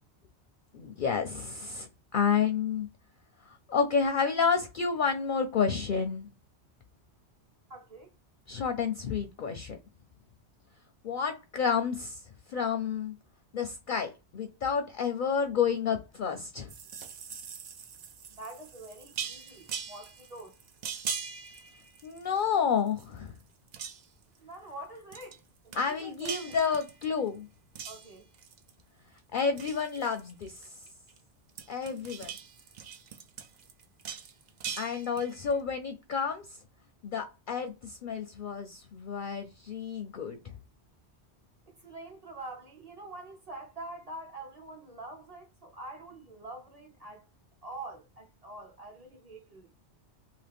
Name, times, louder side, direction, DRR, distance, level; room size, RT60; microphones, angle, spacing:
voice 1, 0.7-1.9 2.1-2.9 3.7-6.3 8.5-9.8 11.0-12.2 12.5-13.1 13.5-16.7 22.0-23.3 25.8-27.5 29.3-30.7 31.7-32.3 34.8-36.4 37.0-40.4, left 6 dB, 55° left, 0.6 m, -30 dB
voice 2, 7.7-8.1 18.3-20.5 24.4-26.5 27.8-28.3 41.6-47.3 47.6-49.7, right 2 dB, 35° right, 1.1 m, -45 dB
sound 1, 16.7-22.5 22.9-23.4 23.7-24.2 25.1-25.4 25.7-27.3 27.7-28.8 29.2-31.2 31.5-35.5, right 7 dB, 60° right, 0.5 m, -41 dB
2.8 x 2.8 x 3.4 m
omnidirectional pair, 1.2 m